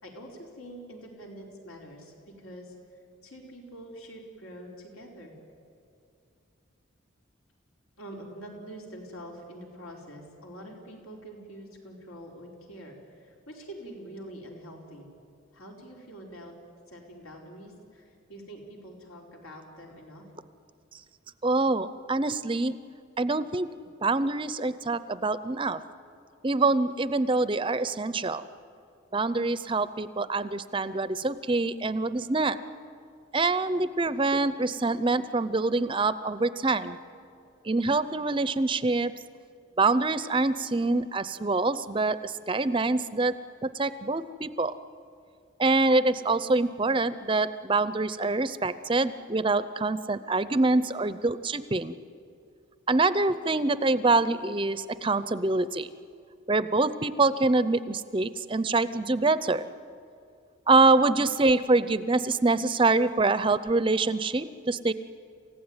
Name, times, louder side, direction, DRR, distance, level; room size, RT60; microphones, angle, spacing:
voice 1, 0.0-2.7 3.2-5.3 8.0-15.1 15.5-16.5 16.9-20.3, right 1 dB, 85° left, 0 dB, 4.7 m, -45 dB
voice 2, 21.4-22.8 23.2-23.7 24.0-25.8 26.4-28.4 29.1-32.6 33.3-37.0 37.6-39.1 39.8-43.3 43.6-44.8 45.6-51.9 52.9-55.9 56.5-59.7 60.7-64.9, right 3 dB, 25° right, 14 dB, 0.5 m, -25 dB
28.5 x 15.5 x 9.7 m, 2.5 s
head